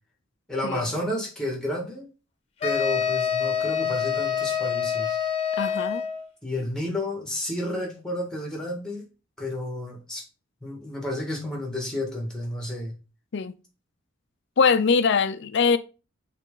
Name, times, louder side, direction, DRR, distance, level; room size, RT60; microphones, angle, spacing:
voice 1, 0.5-2.1 2.6-5.2 6.4-9.0 9.4-10.2 10.6-13.0, left 1 dB, 5° left, 1.8 m, -31 dB
sound 1, 2.6-6.3, left 7 dB, 30° left, 1.1 m, -26 dB
voice 2, 5.6-6.0 13.3-13.5 14.6-15.8, left 5 dB, 55° left, 0.5 m, -22 dB
7.4 x 3.3 x 3.8 m
head